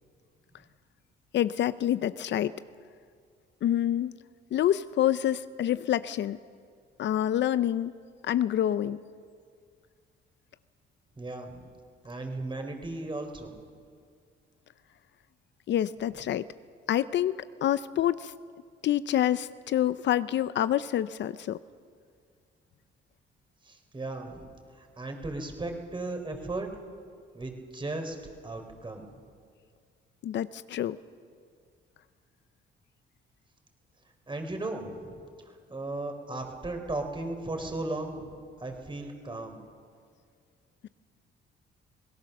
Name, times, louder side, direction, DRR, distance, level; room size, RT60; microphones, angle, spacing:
voice 1, 1.3-2.5 3.6-4.1 4.5-6.4 7.0-7.9 8.2-9.0 15.7-16.5 16.9-18.3 18.8-21.6 30.2-31.0 40.8-40.9, left 11 dB, 65° left, 15 dB, 0.6 m, -27 dB
voice 2, 11.2-11.7 12.0-13.5 23.6-24.5 24.8-26.7 27.3-28.2 28.4-29.1 34.3-39.6, right 2 dB, 25° right, 4 dB, 3.7 m, -36 dB
25.5 x 18.0 x 6.6 m, 2.1 s
cardioid pair, 90°, 20 cm